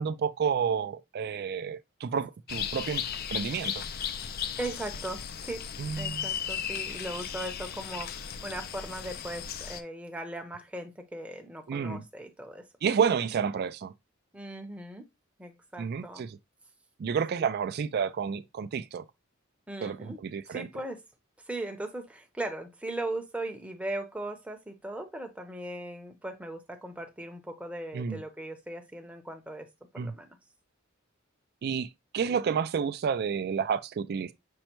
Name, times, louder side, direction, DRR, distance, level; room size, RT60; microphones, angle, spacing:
voice 1, 0.0-3.0 3.3-3.9 5.8-6.3 11.7-12.0 12.8-13.9 15.8-16.4 17.0-19.0 19.8-20.7 27.9-28.2 30.0-30.1 31.6-31.9 32.1-34.3, right 6 dB, 50° right, 0.3 m, -30 dB
sound 1, 2.5-9.8, left 8 dB, 45° left, 0.4 m, -36 dB
voice 2, 4.6-5.7 6.0-12.7 14.3-15.0 15.4-16.2 19.7-20.2 20.5-21.0 21.5-29.7 29.9-30.4, right 1 dB, 5° right, 0.7 m, -38 dB
5.4 x 2.1 x 4.4 m
head